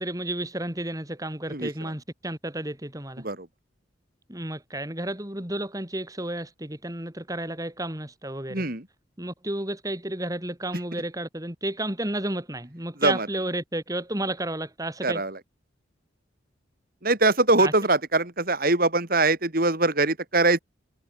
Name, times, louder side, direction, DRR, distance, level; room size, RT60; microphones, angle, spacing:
voice 1, 0.0-3.2 4.3-8.7 9.2-15.2 17.6-17.7, right 1 dB, 20° right, 3.2 m, -32 dB
voice 2, 8.5-8.8 13.0-13.3 15.0-15.4 17.0-20.6, right 2 dB, 50° right, 3.2 m, -22 dB
head